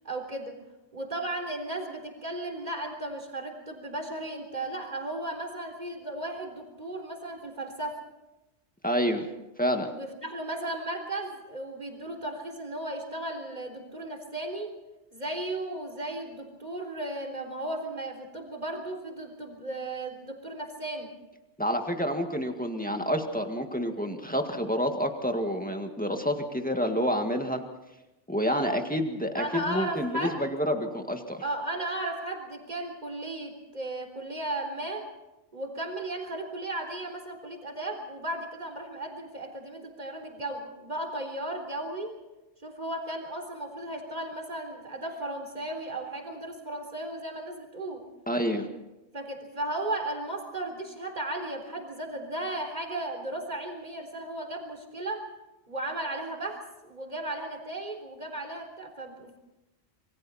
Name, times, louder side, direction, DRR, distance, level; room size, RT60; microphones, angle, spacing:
voice 1, 0.0-0.6 0.9-8.0 9.9-14.7 15.1-21.1 28.4-28.7 29.4-30.4 31.4-35.1 35.5-42.2 42.6-48.0 49.1-55.3 55.7-59.4, right 1 dB, 40° right, 4 dB, 4.0 m, -35 dB
voice 2, 8.8-9.3 9.6-9.9 21.6-27.6 28.3-31.4 48.3-48.7, equal, 5° left, 4 dB, 1.9 m, -28 dB
27.0 x 22.5 x 4.3 m, 0.97 s
omnidirectional pair, 1.2 m